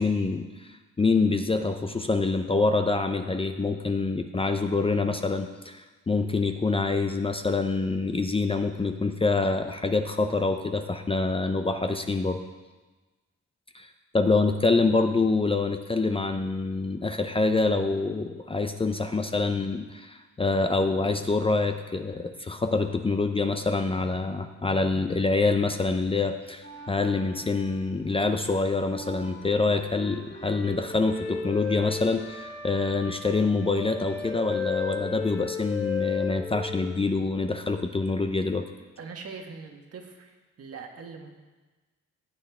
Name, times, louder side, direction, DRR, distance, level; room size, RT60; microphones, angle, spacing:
voice 1, 0.0-12.4 13.7-13.9 14.1-38.7, left 3 dB, 20° left, 7 dB, 0.6 m, -26 dB
sound 1, 26.6-28.3 28.9-36.9, left 6 dB, 40° left, 2.4 m, -35 dB
voice 2, 39.0-41.3, right 5 dB, 50° right, 3 dB, 1.7 m, -42 dB
15.0 x 8.5 x 3.6 m, 1.3 s
cardioid pair, 90°, 30 cm